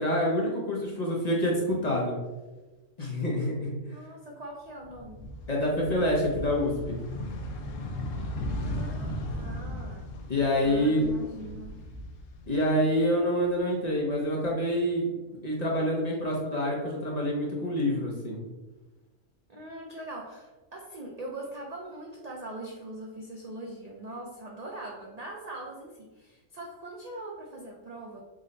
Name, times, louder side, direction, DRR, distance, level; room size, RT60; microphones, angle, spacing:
voice 1, 0.0-2.1 3.0-3.7 5.5-7.0 10.3-11.0 12.5-15.1 15.4-18.4, equal, 45° left, -3 dB, 0.6 m, -27 dB
voice 2, 3.9-5.2 8.6-10.1 10.6-11.9 19.5-28.2, right 2 dB, 75° right, -2 dB, 0.3 m, -42 dB
sound 1, 4.8-12.9 13.3-14.5, left 1 dB, 80° left, 0.9 m, -37 dB
3.8 x 2.1 x 3.7 m, 1.2 s
omnidirectional pair, 1.4 m